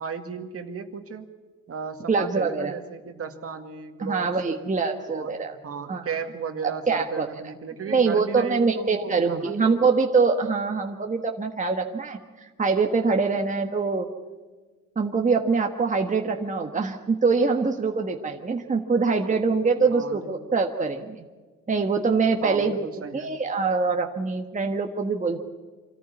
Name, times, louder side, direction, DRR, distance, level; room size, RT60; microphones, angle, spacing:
voice 1, 0.0-1.3 1.7-4.6 5.1-9.8 19.9-20.3 22.4-23.3, right 6 dB, 50° right, 6 dB, 2.0 m, -35 dB
voice 2, 2.1-2.7 4.0-5.5 5.9-6.1 6.9-7.3 7.9-14.1 14.9-21.3 21.7-22.8 23.1-25.4, right 4 dB, 25° right, 3 dB, 1.5 m, -24 dB
25.5 x 14.0 x 8.5 m, 1.4 s
cardioid pair, 90°, 30 cm